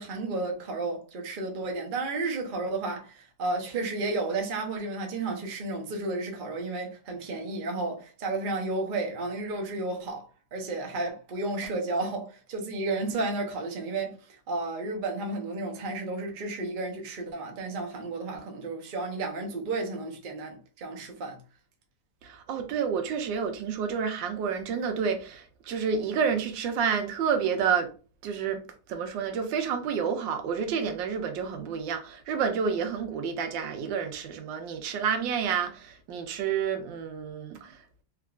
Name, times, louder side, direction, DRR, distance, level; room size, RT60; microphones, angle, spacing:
voice 1, 0.0-10.2 10.5-21.4, right 2 dB, 55° right, 0.5 m, -32 dB
voice 2, 22.2-27.9 28.2-28.6 28.9-38.0, right 6 dB, 90° right, 1.3 m, -29 dB
3.4 x 2.8 x 2.3 m
omnidirectional pair, 2.0 m